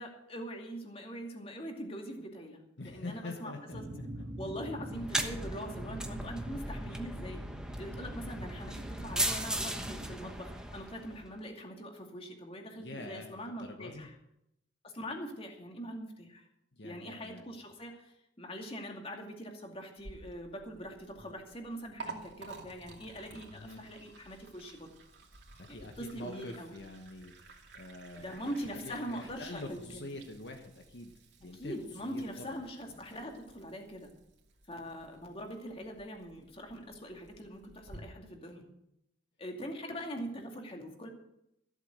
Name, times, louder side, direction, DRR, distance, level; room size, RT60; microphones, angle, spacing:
voice 1, 0.0-3.8 4.4-7.5 7.8-14.1 14.8-16.5 16.8-24.9 25.7-26.7 28.2-29.8 31.4-34.1 34.7-38.7 39.4-41.1, equal, 30° left, 2 dB, 2.4 m, -42 dB
voice 2, 2.8-4.0 12.8-14.1 16.7-17.5 23.5-23.8 25.6-27.3 27.7-31.1 31.4-31.7 32.0-32.6 32.9-33.0, left 2 dB, 65° left, 3 dB, 1.3 m, -45 dB
sound 1, 3.7-10.1, right 1 dB, 35° right, 1.8 m, -44 dB
sound 2, 4.9-11.3, right 1 dB, 5° right, 1.1 m, -37 dB
Liquid, 20.0-38.0, right 3 dB, 60° right, 2.7 m, -53 dB
14.5 x 8.1 x 7.7 m, 0.80 s
head